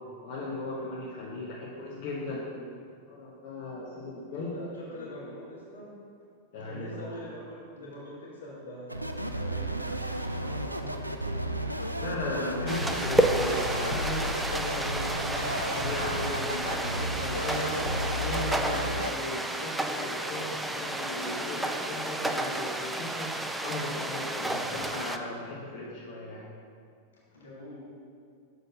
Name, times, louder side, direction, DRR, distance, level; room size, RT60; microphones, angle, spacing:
voice 1, 0.2-2.5 3.1-4.5 4.9-5.1 6.5-6.9 12.0-17.8 18.2-26.4, left 2 dB, 50° left, -7 dB, 1.0 m, -37 dB
voice 2, 4.3-5.9 6.5-9.1 9.3-11.5 17.4-18.5 24.0-24.8 27.3-27.9, left 1 dB, 65° left, -6 dB, 1.6 m, -44 dB
sound 1, 8.9-19.1, equal, 85° right, 0.3 m, -33 dB
sound 2, 12.7-25.2, right 1 dB, 5° right, 0.4 m, -31 dB
6.5 x 4.0 x 5.4 m, 2.3 s
figure-of-eight pair, 90°, 0 cm